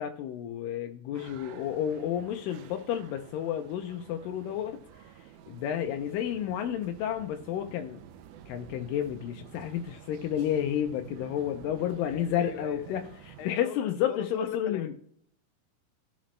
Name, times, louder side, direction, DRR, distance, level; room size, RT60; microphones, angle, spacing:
voice 1, 0.0-8.0 8.5-14.9, left 10 dB, 85° left, 6 dB, 1.9 m, -31 dB
sound 1, 1.1-13.5, right 10 dB, 90° right, 1.8 m, -50 dB
voice 2, 12.1-13.0 13.4-15.0, left 10 dB, 70° left, 6 dB, 1.9 m, -40 dB
15.0 x 5.1 x 3.1 m, 0.63 s
omnidirectional pair, 4.5 m